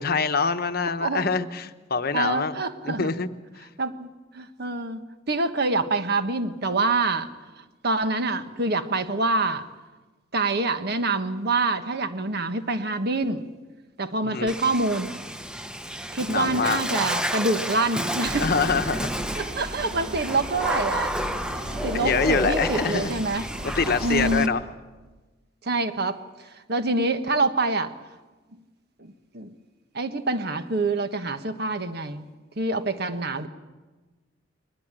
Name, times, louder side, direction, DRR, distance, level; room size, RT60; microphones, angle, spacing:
voice 1, 0.0-2.5 2.8-3.3 3.6-3.7 14.2-14.5 16.3-16.8 18.3-19.1 21.9-24.6, left 4 dB, 50° left, 10 dB, 1.0 m, -25 dB
voice 2, 2.1-3.1 3.8-4.1 4.3-5.0 5.3-7.3 7.8-9.7 10.3-13.5 14.0-15.1 16.1-18.5 19.4-21.1 21.8-23.4 24.0-24.5 25.6-26.2 26.7-27.9 29.0-29.5 29.9-32.3 32.6-33.5, right 2 dB, 55° right, 8 dB, 1.4 m, -26 dB
Water / Splash splatter, 14.5-24.5, equal, 5° right, 0.9 m, -31 dB
sound 1, 18.2-24.4, right 1 dB, 35° right, 4.7 m, -35 dB
22.5 x 20.0 x 8.9 m, 1.3 s
head